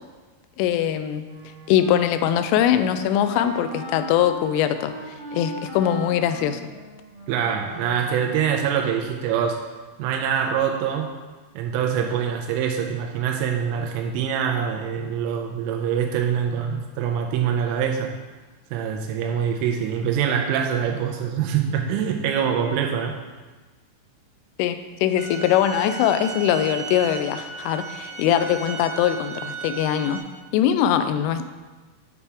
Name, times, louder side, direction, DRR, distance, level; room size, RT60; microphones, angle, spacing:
voice 1, 0.6-1.3 1.7-4.9 5.3-6.6 24.6-30.2 30.5-31.5, left 10 dB, 85° left, 10 dB, 3.1 m, -22 dB
Wind instrument woodwind instrument, 1.2-8.6, equal, 50° right, 1.5 m, -39 dB
voice 2, 7.3-9.6 10.0-11.1 11.6-18.1 18.7-23.1, right 8 dB, 90° right, 2 dB, 3.1 m, -24 dB
sound 1, 25.2-30.2, right 6 dB, 70° right, 2.2 m, -35 dB
8.5 x 6.9 x 3.4 m, 1.3 s
omnidirectional pair, 5.6 m